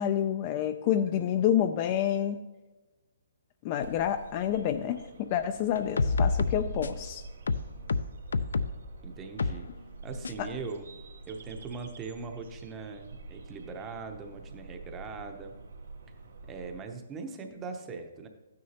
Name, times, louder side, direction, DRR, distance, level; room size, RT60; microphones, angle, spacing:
voice 1, 0.0-2.4 3.6-7.2 10.4-10.5, left 10 dB, 25° left, 8 dB, 0.3 m, -28 dB
sound 1, 3.8-16.9, right 3 dB, 65° right, 2.2 m, -46 dB
sound 2, 5.8-7.1 7.5-8.8 9.4-9.6 10.2-10.3, left 4 dB, 85° left, 0.5 m, -28 dB
voice 2, 9.0-9.7 10.0-10.9 11.3-15.6 16.5-18.3, right 4 dB, 10° right, 5 dB, 0.7 m, -40 dB
13.0 x 9.5 x 2.9 m, 1.2 s
hypercardioid pair, 175°, 0 cm